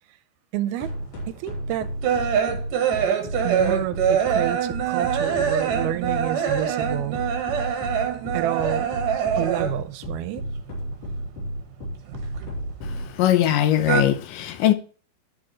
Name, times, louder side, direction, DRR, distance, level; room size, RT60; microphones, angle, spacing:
voice 1, 0.5-0.9 1.3-1.9 3.4-7.2 8.3-8.9 9.4-10.4, right 13 dB, 85° right, 2.6 m, -29 dB
sound 1, 0.8-13.1, equal, 55° left, 4.2 m, -32 dB
sound 2, 1.2-9.9 10.2-11.4 11.7-13.1 13.4-14.0, right 8 dB, 65° right, 2.7 m, -24 dB
voice 2, 12.8-14.7, left 11 dB, 80° left, 2.1 m, -21 dB
10.5 x 6.2 x 3.0 m
omnidirectional pair, 4.4 m